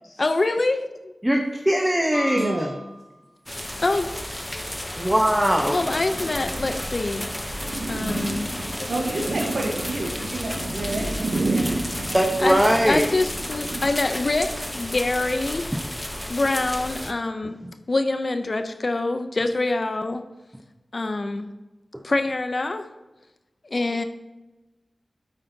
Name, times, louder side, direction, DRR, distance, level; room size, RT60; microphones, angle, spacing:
voice 1, 0.2-1.1 3.8-4.1 5.7-7.3 7.9-8.5 8.8-8.9 12.4-12.6 12.9-15.7 16.3-17.6 17.9-20.2 20.9-21.5 22.0-22.9 23.7-24.0, left 2 dB, 55° left, 8 dB, 0.5 m, -25 dB
voice 2, 1.2-2.7 5.0-5.9 12.1-13.1, equal, 10° right, 2 dB, 0.9 m, -20 dB
sound 1, 2.1-3.1, left 1 dB, 80° left, 2.0 m, -35 dB
voice 3, 2.3-2.7 8.9-11.8, right 2 dB, 80° right, -1 dB, 1.1 m, -30 dB
sound 2, 3.5-17.1, left 1 dB, 15° left, 0.7 m, -32 dB
sound 3, 5.7-13.9, right 2 dB, 60° right, 0.8 m, -32 dB
8.4 x 8.0 x 2.7 m, 1.1 s
cardioid pair, 45°, 0 cm